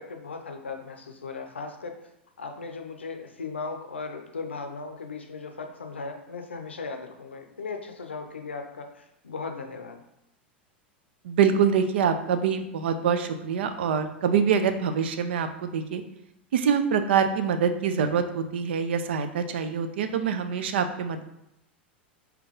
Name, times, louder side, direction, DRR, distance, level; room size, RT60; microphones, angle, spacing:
voice 1, 0.0-2.0 2.4-10.0, left 4 dB, 85° left, 5 dB, 0.5 m, -37 dB
voice 2, 11.2-16.0 16.5-21.2, right 7 dB, 70° right, 9 dB, 0.4 m, -25 dB
3.6 x 2.9 x 3.6 m, 0.83 s
hypercardioid pair, 90°, 6 cm